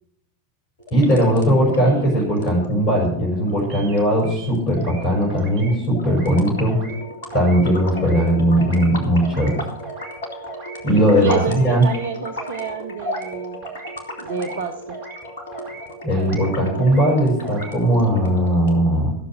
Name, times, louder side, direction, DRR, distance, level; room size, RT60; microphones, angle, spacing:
sound 1, 0.8-18.8, equal, 60° left, 3.1 m, -36 dB
voice 1, 0.9-6.8 7.3-9.6 10.8-11.8 16.0-19.2, equal, 40° left, -2 dB, 5.5 m, -18 dB
sound 2, 3.7-4.0 4.2-5.0 5.3-5.8 6.0-6.4 6.7-7.0 7.3-7.7 7.9-8.3 8.6-8.9 9.2-9.5 9.8-10.2 10.5-10.8 11.1-11.4 11.7-12.1 12.4-12.7 13.0-13.3 13.6-14.0 14.2-14.6 14.9-15.2 15.5-15.9 16.1-16.5 16.8-17.1 17.4-17.8, right 4 dB, 45° right, 3.4 m, -38 dB
voice 2, 11.2-13.6 14.2-15.0, right 6 dB, 65° right, 7 dB, 1.1 m, -28 dB
14.5 x 7.2 x 7.6 m, 0.73 s
figure-of-eight pair, 90°, 0 cm